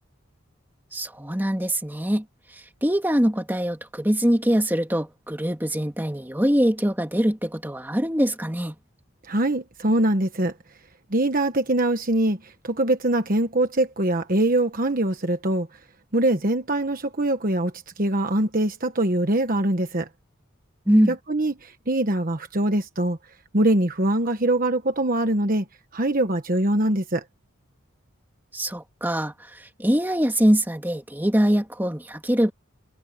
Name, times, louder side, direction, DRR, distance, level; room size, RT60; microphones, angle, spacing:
voice 1, 0.9-2.2 2.8-8.7 20.9-21.1 28.5-32.5, equal, 10° right, 2.4 m, -23 dB
voice 2, 9.2-10.5 11.1-15.7 16.1-20.1 21.1-23.2 23.5-25.6 25.9-27.2, right 1 dB, 40° right, 1.3 m, -23 dB
head